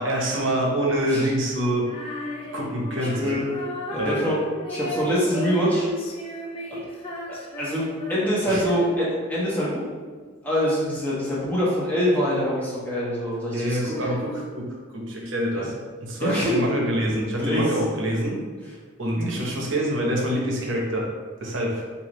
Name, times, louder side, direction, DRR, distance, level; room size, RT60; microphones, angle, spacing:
voice 1, 0.0-1.9 2.5-3.3 4.0-4.2 4.9-5.1 8.5-8.6 13.5-15.7 16.0-18.4 19.0-21.1 21.4-21.9, right 1 dB, 60° right, -1 dB, 0.9 m, -26 dB
Female singing, 1.8-9.2, left 1 dB, 25° left, 0.4 m, -34 dB
voice 2, 3.0-3.4 3.9-4.4 4.7-5.8 6.7-6.8 7.3-9.8 10.2-13.9 15.5-15.7 16.2-16.5 17.4-17.7 19.2-19.3, equal, 10° left, -8 dB, 1.1 m, -25 dB
4.8 x 2.6 x 3.0 m, 1.5 s
head